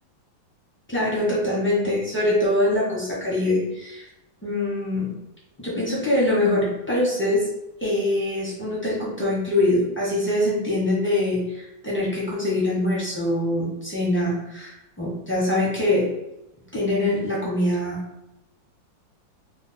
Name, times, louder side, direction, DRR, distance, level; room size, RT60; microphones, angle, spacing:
voice 1, 0.9-4.1 4.4-5.1 5.6-7.5 7.8-16.1 16.7-18.0, left 1 dB, 20° left, -7 dB, 0.3 m, -23 dB
3.3 x 2.1 x 4.0 m, 0.88 s
omnidirectional pair, 2.1 m